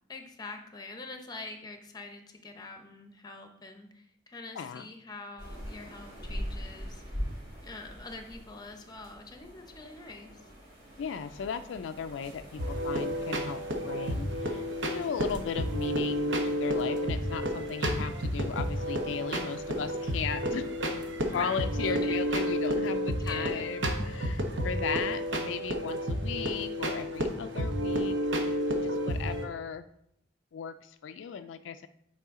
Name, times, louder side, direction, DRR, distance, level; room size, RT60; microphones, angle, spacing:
voice 1, 0.1-7.0 7.6-10.3 21.3-22.2 23.2-23.6, left 3 dB, 20° left, 5 dB, 0.8 m, -44 dB
sound 1, 5.4-22.6, equal, 60° right, 3.0 m, -45 dB
voice 2, 11.0-20.7 21.3-29.8 30.5-31.9, left 6 dB, 75° left, 9 dB, 0.3 m, -37 dB
sound 2, 12.6-29.4, equal, 80° right, 1.0 m, -31 dB
8.3 x 4.7 x 3.7 m, 0.75 s
head